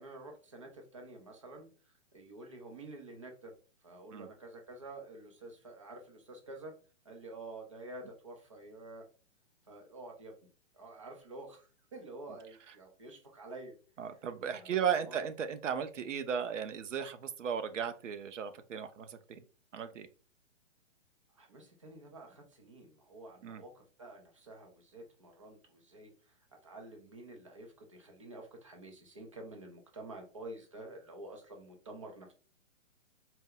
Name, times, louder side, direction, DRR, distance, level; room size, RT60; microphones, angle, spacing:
voice 1, 0.0-3.5 3.8-6.7 7.0-9.0 9.7-10.4 10.7-13.8 14.5-15.2 21.4-32.3, right 2 dB, 25° right, 3 dB, 0.6 m, -49 dB
voice 2, 14.0-19.4 19.7-20.1 23.4-23.6, right 7 dB, 70° right, 10 dB, 0.6 m, -36 dB
4.3 x 2.1 x 3.7 m, 0.37 s
hypercardioid pair, 175°, 39 cm